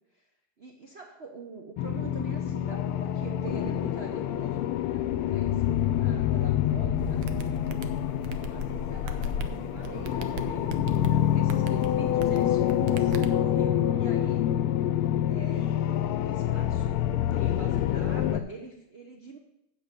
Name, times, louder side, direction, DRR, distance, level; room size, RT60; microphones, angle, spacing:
voice 1, 0.6-4.6 4.9-7.3 8.5-10.6 10.9-14.5 15.2-15.8 16.2-19.4, right 4 dB, 55° right, 2 dB, 0.7 m, -44 dB
sound 1, 1.8-18.4, left 11 dB, 85° left, 1.5 m, -27 dB
sound 2, 7.0-13.3, right 5 dB, 70° right, 1.5 m, -39 dB
8.2 x 6.6 x 8.1 m, 0.87 s
omnidirectional pair, 2.4 m